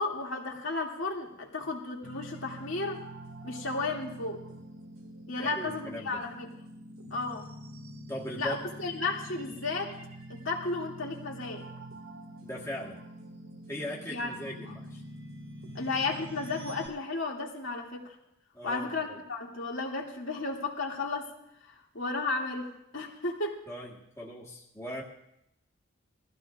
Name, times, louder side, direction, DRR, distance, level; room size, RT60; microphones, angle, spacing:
voice 1, 0.0-3.0 3.4-4.4 5.3-6.5 7.1-7.5 8.4-9.9 10.3-11.7 14.1-14.3 15.7-18.2 18.6-21.3 21.7-23.6, left 3 dB, 65° left, -1 dB, 2.6 m, -33 dB
sound 1, 2.0-16.9, right 1 dB, 85° right, 2.2 m, -46 dB
voice 2, 5.4-6.2 8.1-8.6 12.4-13.0 13.7-15.0 18.5-19.2 23.7-25.0, left 1 dB, 15° left, -5 dB, 1.6 m, -39 dB
22.5 x 15.0 x 2.5 m, 0.80 s
head